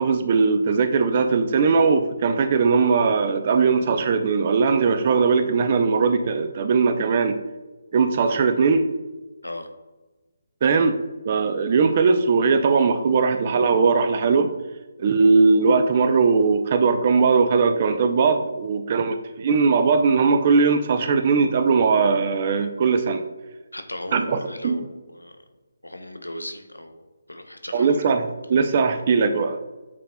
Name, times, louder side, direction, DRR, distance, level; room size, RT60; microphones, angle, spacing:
voice 1, 0.0-7.4 7.9-8.8 10.6-11.0 11.3-14.5 15.0-23.2 24.1-24.8 27.7-29.6, right 5 dB, 40° right, 9 dB, 0.4 m, -19 dB
voice 2, 23.7-25.4 25.8-27.0 27.3-28.0, left 1 dB, 90° left, 6 dB, 0.6 m, -37 dB
8.4 x 2.9 x 2.2 m, 1.2 s
figure-of-eight pair, 150°, 0 cm